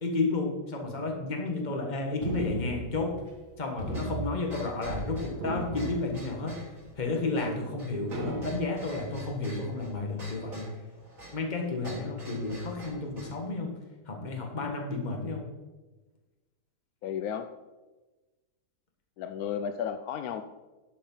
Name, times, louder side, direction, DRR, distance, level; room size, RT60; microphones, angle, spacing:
voice 1, 0.0-3.1 3.6-6.6 7.0-10.6 11.3-13.7 14.0-15.4, left 3 dB, 30° left, 1 dB, 1.6 m, -32 dB
sound 1, 2.2-3.5 3.8-5.1 5.3-6.7 7.2-7.3 8.1-9.0, right 1 dB, 80° right, 2.2 m, -36 dB
sound 2, 3.9-13.4, right 1 dB, 60° right, 3.8 m, -47 dB
voice 2, 17.0-17.5 19.2-20.4, left 8 dB, 75° left, 9 dB, 1.0 m, -33 dB
11.5 x 5.4 x 5.5 m, 1.2 s
omnidirectional pair, 1.7 m